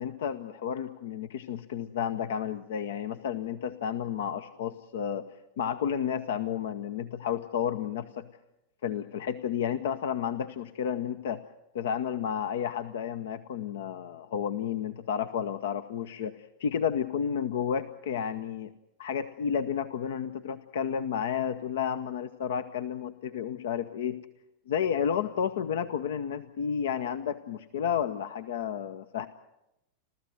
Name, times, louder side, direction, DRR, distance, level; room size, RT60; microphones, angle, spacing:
voice 1, 0.0-5.3 5.6-8.3 8.8-11.4 11.7-18.7 19.0-24.2 24.7-29.3, left 8 dB, 60° left, 11 dB, 0.8 m, -31 dB
30.0 x 13.5 x 7.9 m, 0.90 s
figure-of-eight pair, 90°, 0 cm